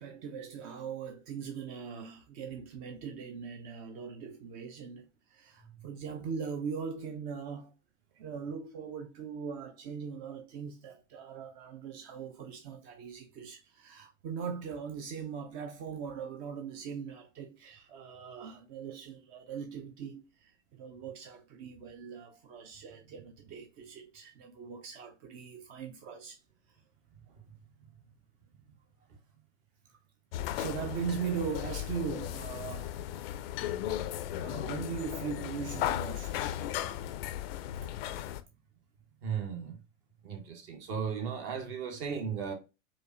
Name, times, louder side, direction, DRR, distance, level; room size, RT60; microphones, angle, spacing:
voice 1, 0.0-7.7 8.1-26.4 26.7-26.8 30.6-32.9 34.3-36.5 37.8-37.9, right 6 dB, 25° right, 0.3 m, -40 dB
sound 1, 30.3-38.4, left 12 dB, 50° left, 0.4 m, -36 dB
voice 2, 39.2-39.8 40.2-42.5, right 7 dB, 45° right, 1.0 m, -36 dB
5.0 x 2.1 x 2.4 m
figure-of-eight pair, 95°, 38 cm